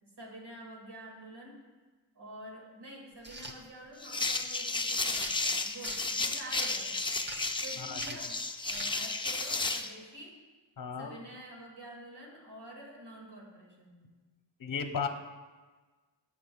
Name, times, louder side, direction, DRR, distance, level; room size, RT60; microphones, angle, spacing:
voice 1, 0.0-1.6 2.2-7.2 7.6-8.3 8.6-10.3 11.0-14.2, right 1 dB, 60° right, -2 dB, 2.2 m, -48 dB
sound 1, 3.2-3.6 4.2-4.4 5.0-6.0 6.5-6.8 7.2-7.6 7.9-8.3 8.6-8.9, right 2 dB, 25° right, 0.8 m, -42 dB
sound 2, 4.0-9.9, left 3 dB, 10° left, 0.4 m, -33 dB
voice 2, 10.8-11.2 14.6-15.1, left 6 dB, 45° left, 6 dB, 0.7 m, -34 dB
15.0 x 6.0 x 2.3 m, 1.3 s
wide cardioid pair, 100°, 46 cm